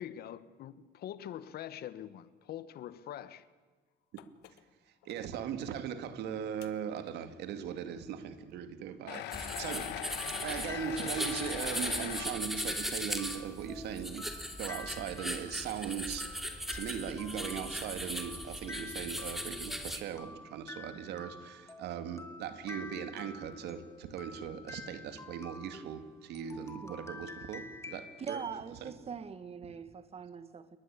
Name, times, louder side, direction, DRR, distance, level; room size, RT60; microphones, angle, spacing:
voice 1, 0.0-3.4, left 11 dB, 65° left, 1.5 m, -44 dB
sound 1, 4.2-4.6 5.0-5.1 5.8-5.9 6.6-6.7 9.1-12.3, left 14 dB, 85° left, 1.5 m, -41 dB
voice 2, 5.0-10.1 10.4-14.3 14.6-28.4 28.8-28.9, right 8 dB, 80° right, 2.5 m, -39 dB
sound 2, 9.3-20.0, equal, ahead, 3.0 m, -38 dB
sound 3, 10.2-28.6, left 2 dB, 15° left, 2.9 m, -49 dB
voice 3, 28.2-30.8, right 6 dB, 35° right, 2.1 m, -42 dB
29.0 x 23.0 x 8.7 m
cardioid pair, 110°, 17 cm